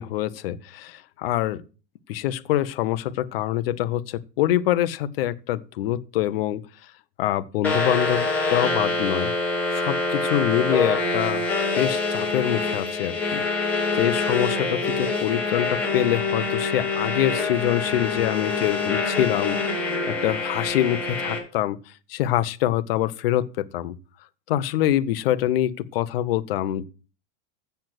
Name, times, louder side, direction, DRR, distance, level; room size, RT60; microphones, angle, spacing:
voice 1, 0.0-1.6 2.1-6.6 7.2-9.3 9.7-11.4 11.8-21.8 22.1-23.9 24.5-26.8, left 13 dB, 50° left, 0.8 m, -25 dB
sound 1, 7.6-21.4, left 3 dB, 5° left, 2.6 m, -25 dB
7.8 x 6.9 x 7.7 m
supercardioid pair, 180°, 37 cm